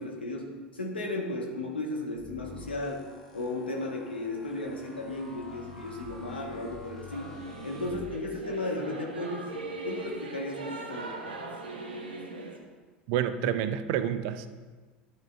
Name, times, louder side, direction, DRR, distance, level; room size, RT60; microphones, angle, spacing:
voice 1, 0.0-3.1 3.3-7.3 7.6-9.5 9.8-11.2, left 2 dB, 80° left, -1 dB, 1.5 m, -35 dB
sound 1, 2.1-8.6, left 5 dB, 5° left, 1.7 m, -48 dB
Singing / Musical instrument, 7.1-12.6, right 3 dB, 75° right, 1.1 m, -40 dB
voice 2, 13.1-14.5, right 10 dB, 50° right, 11 dB, 0.5 m, -28 dB
12.0 x 7.4 x 2.5 m, 1.4 s
figure-of-eight pair, 75°, 5 cm